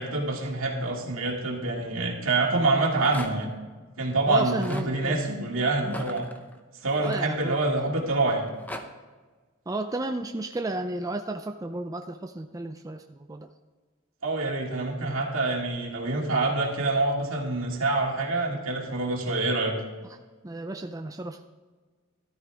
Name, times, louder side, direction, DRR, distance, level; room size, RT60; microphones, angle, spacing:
voice 1, 0.0-3.5 4.0-6.3 6.8-8.5 14.2-19.8, right 2 dB, 75° right, 0 dB, 2.2 m, -26 dB
Rattle, 2.7-3.6 4.3-4.9 5.8-7.8 8.3-8.8, left 1 dB, 10° left, 0.8 m, -41 dB
voice 2, 4.3-5.2 7.0-7.6 9.7-13.5 20.4-21.4, right 2 dB, 15° right, 5 dB, 0.5 m, -33 dB
13.0 x 13.0 x 3.5 m, 1.4 s
head